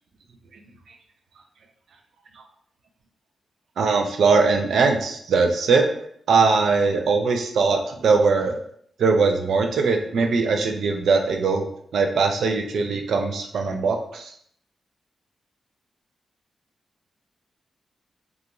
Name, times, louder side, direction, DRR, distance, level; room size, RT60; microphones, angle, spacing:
voice 1, 3.8-5.8 6.3-8.6 9.0-11.7 11.9-14.3, right 4 dB, 80° right, 4 dB, 0.4 m, -21 dB
2.4 x 2.3 x 2.9 m, 0.65 s
wide cardioid pair, 130°, 0 cm